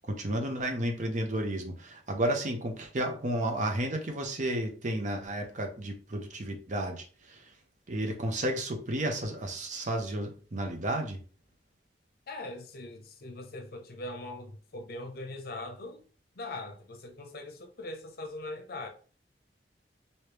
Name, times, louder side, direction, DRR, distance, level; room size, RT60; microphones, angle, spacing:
voice 1, 0.0-7.5 7.9-11.2, right 1 dB, 45° right, 0.7 m, -32 dB
voice 2, 12.3-16.0 16.3-18.9, left 2 dB, 55° left, 0.7 m, -41 dB
3.1 x 2.7 x 3.3 m
head